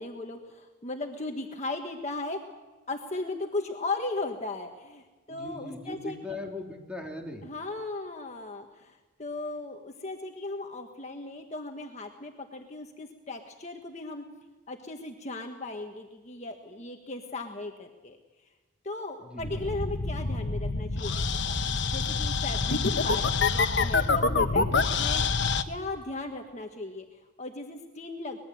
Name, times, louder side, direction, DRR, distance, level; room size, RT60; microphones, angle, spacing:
voice 1, 0.0-2.6 2.9-6.4 7.4-14.2 14.7-18.2 18.8-23.2 23.5-28.4, left 2 dB, 35° left, 3 dB, 1.5 m, -37 dB
voice 2, 5.3-7.5 19.2-19.8, left 1 dB, 5° right, 0 dB, 3.3 m, -39 dB
sound 1, 19.4-25.6, left 4 dB, 60° left, 1.1 m, -26 dB
24.0 x 20.5 x 7.7 m, 1.2 s
head